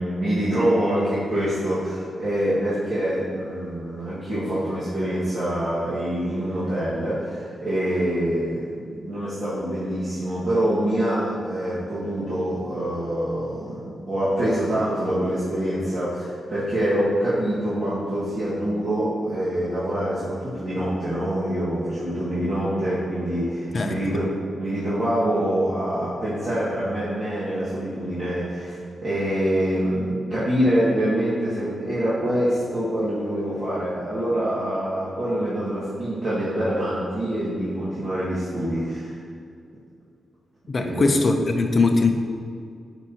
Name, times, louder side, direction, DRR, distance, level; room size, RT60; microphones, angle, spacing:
voice 1, 0.0-39.2 40.8-41.1, right 1 dB, 45° right, -12 dB, 1.7 m, -25 dB
voice 2, 23.7-24.2 40.7-42.1, left 3 dB, 35° left, 5 dB, 0.6 m, -21 dB
9.2 x 5.3 x 2.9 m, 2.2 s
wide cardioid pair, 135°, 0 cm